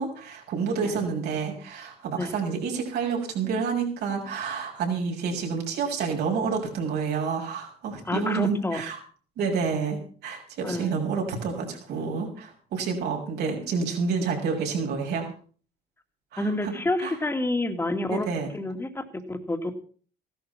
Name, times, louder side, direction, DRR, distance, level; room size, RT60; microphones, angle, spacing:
voice 1, 0.0-9.0 9.4-15.3 16.3-16.7 17.0-17.2 18.1-18.5, right 5 dB, 75° right, 1 dB, 6.3 m, -29 dB
voice 2, 8.1-8.8 10.6-10.9 16.4-18.3 18.5-19.7, left 2 dB, 15° left, 6 dB, 2.4 m, -28 dB
16.0 x 12.0 x 5.8 m, 0.44 s
cardioid pair, 110°, 17 cm